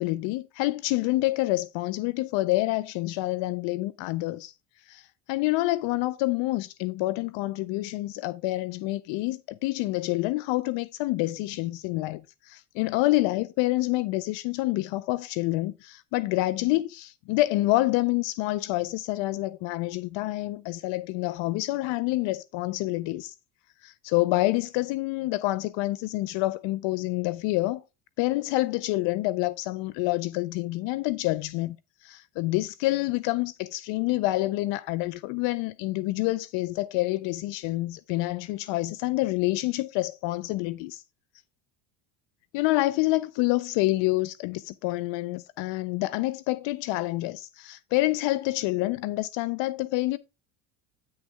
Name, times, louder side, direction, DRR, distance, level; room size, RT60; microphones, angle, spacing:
voice 1, 0.0-4.5 4.9-23.3 23.8-27.8 28.2-31.8 32.0-41.0 42.5-50.2, left 19 dB, 65° left, 0.6 m, -27 dB
9.4 x 6.4 x 3.4 m
supercardioid pair, 115°, 48 cm